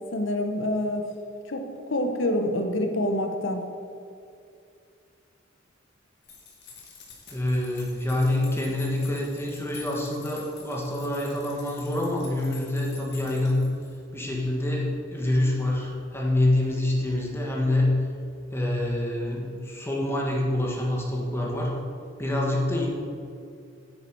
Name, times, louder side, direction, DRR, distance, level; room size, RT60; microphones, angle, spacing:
voice 1, 0.1-1.1 1.5-3.7, left 1 dB, 80° left, 5 dB, 1.0 m, -27 dB
sound 1, 6.2-14.0, left 5 dB, 60° left, 2.0 m, -47 dB
voice 2, 7.3-13.6 14.1-18.0 18.5-21.8 22.2-22.9, left 1 dB, 15° left, -2 dB, 1.6 m, -26 dB
9.8 x 8.4 x 4.7 m, 2.5 s
head